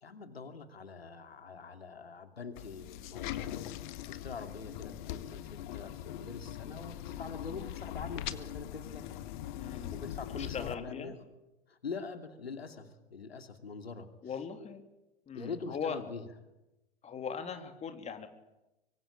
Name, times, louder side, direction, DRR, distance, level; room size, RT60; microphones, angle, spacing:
voice 1, 0.0-3.5 4.1-9.0 9.9-11.1 11.7-14.1 15.3-16.2, left 4 dB, 80° left, 7 dB, 2.8 m, -44 dB
sound 1, 2.6-10.7, left 12 dB, 50° left, 1.8 m, -41 dB
voice 2, 9.5-10.0 10.3-11.1 14.2-14.8 15.3-16.0 17.0-18.3, left 6 dB, 20° left, 6 dB, 3.1 m, -39 dB
24.5 x 24.5 x 8.7 m, 0.97 s
figure-of-eight pair, 95°, 30 cm